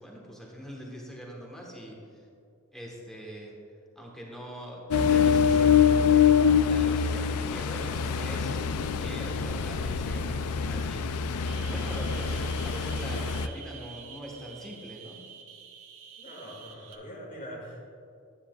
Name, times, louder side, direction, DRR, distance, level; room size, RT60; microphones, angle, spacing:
voice 1, 0.0-2.2 2.7-3.5 3.9-15.2, equal, ahead, -2 dB, 1.2 m, -42 dB
Ocean, 4.9-13.5, left 7 dB, 80° left, 0.4 m, -25 dB
sound 1, 11.5-16.9, right 7 dB, 70° right, 0.7 m, -48 dB
voice 2, 16.2-17.8, equal, 35° left, -2 dB, 1.7 m, -43 dB
9.9 x 9.5 x 2.3 m, 2.4 s
head